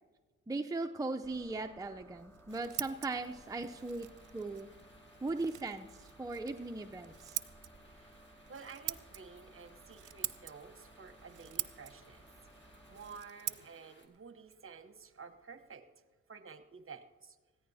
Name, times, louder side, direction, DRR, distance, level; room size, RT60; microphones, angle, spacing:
voice 1, 0.5-4.1 4.3-4.7 5.2-7.4, right 3 dB, 10° right, 5 dB, 0.5 m, -38 dB
sound 1, 1.2-13.2, right 1 dB, 10° left, 2.1 m, -60 dB
Scissors, 2.2-15.8, right 13 dB, 70° right, 0.6 m, -46 dB
sound 2, 2.5-14.1, left 1 dB, 35° left, 2.0 m, -63 dB
voice 2, 7.6-15.8 16.3-17.4, right 5 dB, 40° right, 9 dB, 1.0 m, -52 dB
20.0 x 14.5 x 2.8 m, 1.3 s
supercardioid pair, 55°, 32 cm